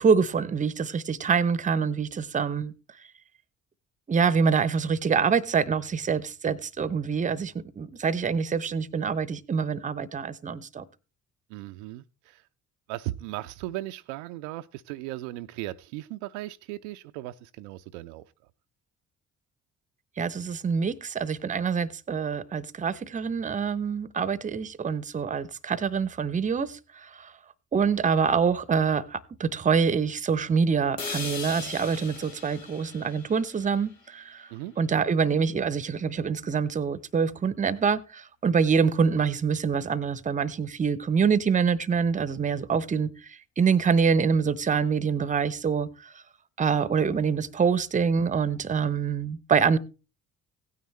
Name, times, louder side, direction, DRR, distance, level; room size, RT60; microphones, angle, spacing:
voice 1, 0.0-2.7 4.1-10.8 20.2-27.3 27.7-34.5 34.8-43.1 43.6-46.1 46.6-49.8, right 6 dB, 20° right, 0.7 m, -25 dB
voice 2, 11.5-12.4 12.9-18.2 34.5-34.7, right 16 dB, 65° right, 0.5 m, -37 dB
sound 1, 31.0-35.0, left 4 dB, 85° left, 1.2 m, -40 dB
16.0 x 9.5 x 3.1 m
figure-of-eight pair, 50°, 37 cm